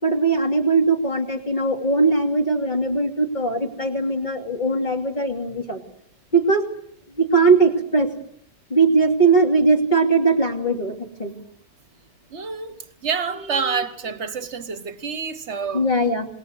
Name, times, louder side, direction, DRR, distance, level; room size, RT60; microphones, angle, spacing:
voice 1, 0.0-5.8 6.3-6.6 7.2-8.1 8.7-11.3 13.3-13.8 15.7-16.3, right 3 dB, 25° left, 3.0 m, -20 dB
voice 2, 12.3-15.8, right 5 dB, 45° right, 1.6 m, -28 dB
27.5 x 21.0 x 8.0 m
omnidirectional pair, 1.7 m